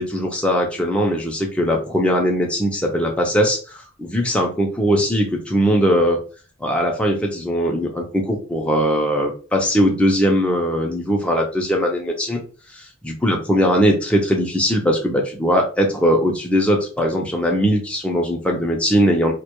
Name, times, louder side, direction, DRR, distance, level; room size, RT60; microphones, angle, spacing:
voice 1, 0.0-6.2 6.6-12.4 12.7-19.3, equal, 5° left, 0 dB, 0.4 m, -20 dB
2.1 x 2.1 x 2.9 m, 0.37 s
head